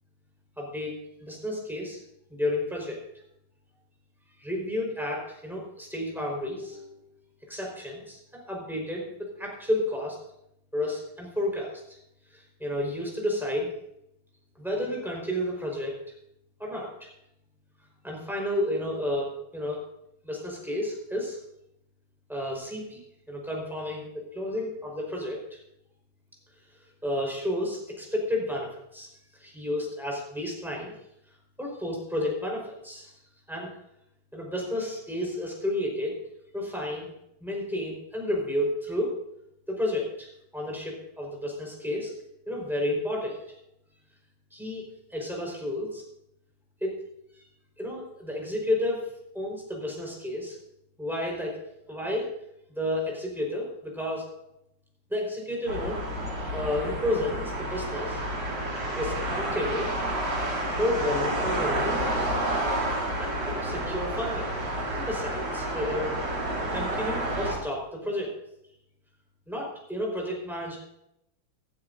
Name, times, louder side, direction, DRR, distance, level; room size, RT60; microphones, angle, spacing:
voice 1, 0.6-2.0 2.3-3.0 4.4-7.0 7.5-9.1 9.4-10.2 10.7-12.0 12.3-13.7 14.6-15.9 16.6-17.1 18.0-19.8 20.2-21.4 22.3-23.0 23.3-25.6 27.0-29.1 29.4-30.9 31.6-33.1 33.5-33.7 34.3-36.1 36.5-37.1 37.4-39.2 39.7-42.1 42.5-43.4 44.5-44.8 45.1-46.0 46.8-46.9 47.8-49.1 49.3-50.6 51.0-51.5 51.9-52.3 52.7-54.3 55.1-55.9 56.5-58.2 59.0-59.9 60.8-61.9 63.2-64.5 64.9-66.2 66.7-68.3 69.5-70.8, left 1 dB, ahead, -2 dB, 4.3 m, -31 dB
sound 1, 55.7-67.5, right 1 dB, 65° right, 4.2 m, -30 dB
18.5 x 12.0 x 2.6 m, 0.79 s
omnidirectional pair, 2.3 m